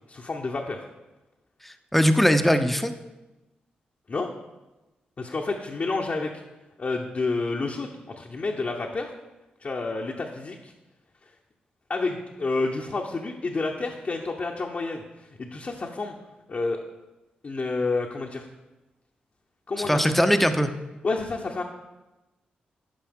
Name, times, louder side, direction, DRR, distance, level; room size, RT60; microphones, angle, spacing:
voice 1, 0.1-0.8 4.1-4.3 5.2-6.3 6.8-9.1 9.6-10.7 11.9-15.0 15.4-16.1 16.5-16.8 17.4-18.5 19.7-20.0 21.0-21.6, left 3 dB, 45° left, 0 dB, 0.8 m, -29 dB
voice 2, 1.6-2.9 19.8-20.7, equal, 5° left, 8 dB, 0.6 m, -21 dB
10.0 x 5.3 x 3.6 m, 1.1 s
supercardioid pair, 45°, 4 cm